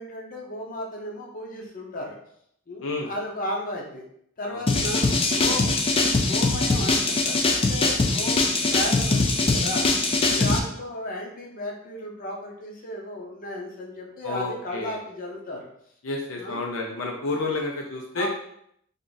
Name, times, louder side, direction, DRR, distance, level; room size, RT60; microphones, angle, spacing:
voice 1, 0.0-2.2 2.7-4.0 4.4-5.7 6.2-9.9 10.3-15.7 16.3-16.6 18.1-18.3, left 1 dB, 45° left, -1 dB, 0.8 m, -34 dB
voice 2, 4.5-4.9 10.3-10.5 14.2-15.0 16.0-18.3, left 3 dB, 80° left, 0 dB, 0.6 m, -30 dB
sound 1, 4.7-10.6, left 3 dB, 30° left, 0.4 m, -22 dB
3.6 x 2.5 x 3.9 m, 0.72 s
head